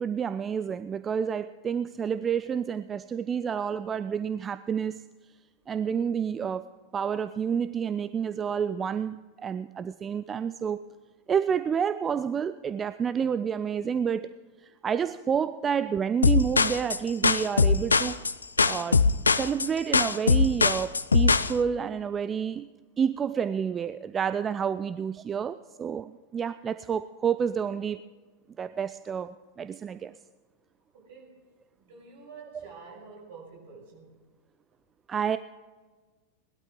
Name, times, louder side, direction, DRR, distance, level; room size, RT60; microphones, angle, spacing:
voice 1, 0.0-5.0 5.7-6.7 6.9-10.9 11.3-14.3 14.6-18.2 18.6-22.7 23.0-28.0 28.6-30.1 35.1-35.4, right 7 dB, 20° right, 13 dB, 0.3 m, -29 dB
sound 1, 16.2-21.5, left 4 dB, 75° left, 0.4 m, -22 dB
voice 2, 30.9-34.2, right 5 dB, 55° right, -1 dB, 5.5 m, -48 dB
20.0 x 12.0 x 3.7 m, 1.4 s
figure-of-eight pair, 90°, 0 cm